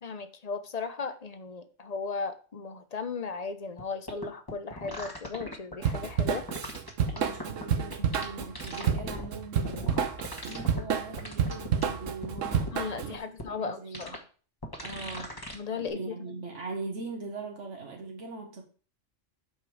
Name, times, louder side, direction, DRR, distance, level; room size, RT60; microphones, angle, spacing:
voice 1, 0.0-6.4 12.7-14.2 15.5-16.4, left 5 dB, 40° left, 10 dB, 0.7 m, -36 dB
sound 1, 3.8-3.9 4.1-6.0 6.5-7.6 7.9-9.3 9.6-10.8 11.2-12.8 13.4-13.5 13.9-14.2 14.6-15.6 15.9-16.0, left 1 dB, 20° left, 1.2 m, -39 dB
Drum kit / Drum, 5.8-13.1, right 7 dB, 85° right, 1.3 m, -30 dB
voice 2, 7.1-10.2 10.4-13.2 13.5-14.2 14.8-15.5 15.7-18.6, right 3 dB, 70° right, 2 dB, 1.5 m, -41 dB
8.2 x 5.2 x 4.9 m, 0.40 s
omnidirectional pair, 1.3 m